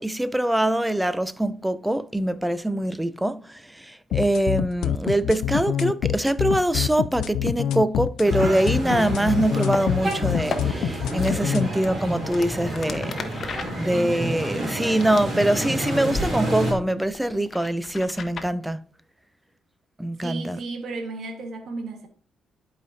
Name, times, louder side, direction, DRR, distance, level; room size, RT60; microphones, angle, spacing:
voice 1, 0.0-13.5 13.8-18.8 20.0-20.6, right 1 dB, 5° right, 0.5 m, -24 dB
sound 1, 4.1-11.7, left 11 dB, 80° left, 0.4 m, -25 dB
sound 2, 8.2-16.7, right 1 dB, 40° right, 2.9 m, -29 dB
sound 3, 9.6-9.8 10.3-10.6 11.2-11.3 11.8-15.7 16.0-16.3 16.6-18.5, left 4 dB, 50° left, 0.9 m, -35 dB
voice 2, 20.2-22.1, right 3 dB, 65° right, 1.6 m, -33 dB
11.0 x 5.0 x 2.7 m
cardioid pair, 90°, 0 cm